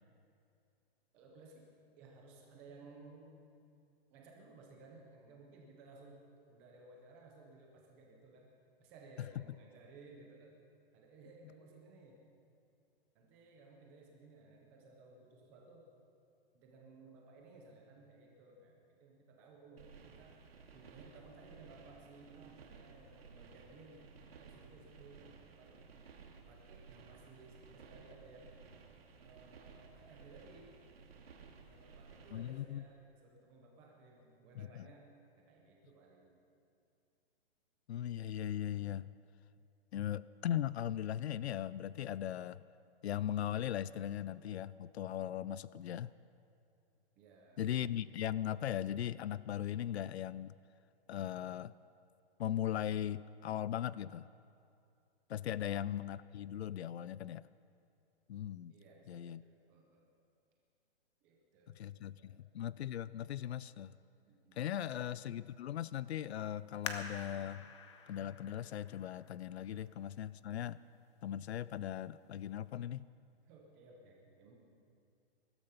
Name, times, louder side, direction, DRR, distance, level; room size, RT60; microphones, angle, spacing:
voice 1, 1.1-1.7 2.0-3.4 4.1-6.2 6.5-8.5 8.8-10.5 10.9-12.2 13.1-15.9 16.5-20.4 20.7-24.1 24.4-25.8 26.5-28.6 29.2-30.7 31.6-35.1 35.4-36.4 47.2-47.7 55.5-55.7 58.7-60.1 61.2-62.4 64.2-64.9 69.7-69.8 73.4-74.6, right 3 dB, 5° right, 0 dB, 0.5 m, -58 dB
sound 1, 19.8-32.6, right 5 dB, 70° right, 2.0 m, -57 dB
voice 2, 32.3-32.8 34.6-34.9 37.9-39.1 39.9-42.6 43.0-46.1 47.6-50.5 51.1-51.7 52.4-54.3 55.3-57.5 58.3-58.7 59.1-59.4 61.8-63.9 64.6-67.6 68.1-70.8 71.2-73.0, left 11 dB, 90° left, 18 dB, 0.5 m, -39 dB
sound 2, 66.8-70.2 70.8-70.9 71.5-71.9 72.3-72.4, left 6 dB, 25° left, 0.8 m, -47 dB
20.0 x 12.5 x 5.7 m, 2.5 s
hypercardioid pair, 175°, 31 cm